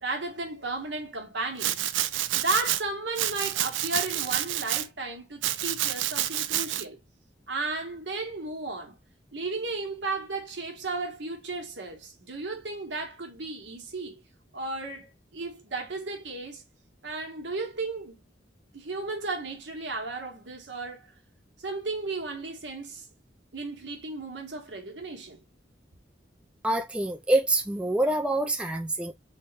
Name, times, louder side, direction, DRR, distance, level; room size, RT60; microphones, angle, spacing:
voice 1, 0.0-1.9 2.3-7.0 7.5-9.0 9.3-14.2 14.5-16.6 17.0-18.2 18.7-21.1 21.6-23.1 23.5-25.4, right 3 dB, 75° right, 1.1 m, -34 dB
Domestic sounds home sounds, 1.6-2.8 3.1-4.9 5.4-6.8, right 13 dB, 90° right, 0.3 m, -28 dB
voice 2, 26.6-29.1, right 1 dB, 5° right, 0.3 m, -26 dB
3.4 x 2.2 x 3.9 m
head